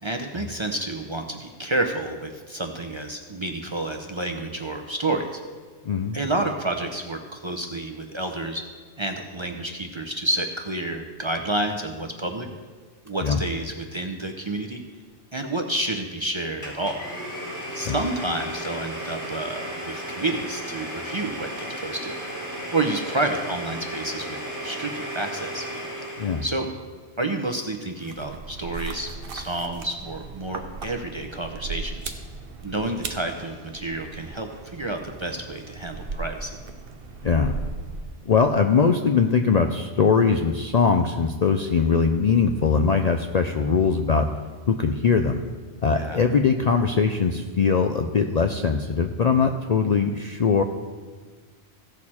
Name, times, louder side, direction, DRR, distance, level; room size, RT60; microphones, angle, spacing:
voice 1, 0.0-5.4 6.1-8.6 9.0-12.5 13.0-14.8 15.3-17.0 17.7-22.1 22.7-25.7 26.4-26.7 27.2-32.1 32.6-36.5 45.9-46.2, right 2 dB, 30° right, 4 dB, 0.6 m, -29 dB
voice 2, 5.8-6.2 13.2-13.4 17.9-18.0 26.2-26.4 37.2-37.6 38.2-44.3 44.7-45.4 45.8-50.6, left 5 dB, 50° left, 5 dB, 0.5 m, -21 dB
Domestic sounds home sounds, 16.6-26.6, equal, 70° left, 3.2 m, -34 dB
sound 1, 28.0-38.4, right 4 dB, 55° right, 0.9 m, -37 dB
15.5 x 6.5 x 4.3 m, 1.5 s
omnidirectional pair, 1.2 m